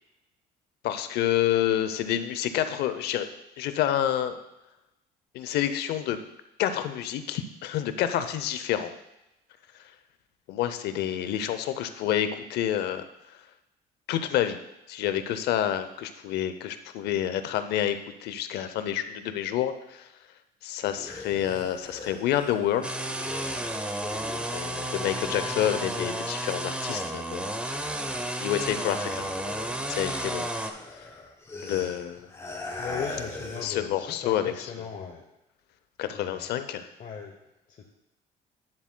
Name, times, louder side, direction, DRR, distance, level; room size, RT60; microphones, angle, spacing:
voice 1, 0.8-3.3 3.6-4.4 5.3-6.2 6.6-8.9 10.5-13.0 14.1-14.6 14.9-20.1 20.6-22.9 24.5-27.6 28.4-29.3 29.9-30.5 31.6-32.3 33.6-34.7 36.0-36.9, left 11 dB, 80° left, 10 dB, 0.6 m, -28 dB
sound 1, 20.8-27.0 27.3-33.8, left 2 dB, 15° left, 1.5 m, -41 dB
sound 2, 22.8-30.7, right 1 dB, 5° right, 0.6 m, -32 dB
voice 2, 32.8-35.2 36.1-36.5 37.0-37.3 37.8-37.9, left 6 dB, 45° left, 2 dB, 0.8 m, -38 dB
9.8 x 7.3 x 2.2 m, 0.91 s
cardioid pair, 110°, 17 cm